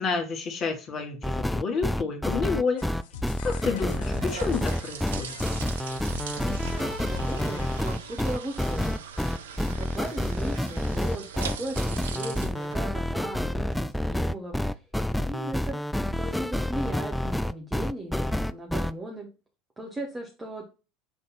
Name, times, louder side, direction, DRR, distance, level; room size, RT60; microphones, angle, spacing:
voice 1, 0.0-2.8 3.4-5.4, left 4 dB, 40° left, 5 dB, 1.6 m, -29 dB
sound 1, 1.2-18.9, left 1 dB, 5° left, 0.4 m, -28 dB
sound 2, 2.8-8.2, left 11 dB, 70° left, 0.6 m, -44 dB
sound 3, 3.1-13.5, right 7 dB, 75° right, 0.6 m, -41 dB
voice 2, 6.4-9.1 9.6-14.8 15.1-19.3 19.8-20.6, right 1 dB, 15° right, 0 dB, 1.5 m, -37 dB
6.1 x 3.7 x 4.1 m, 0.32 s
figure-of-eight pair, 75°, 0 cm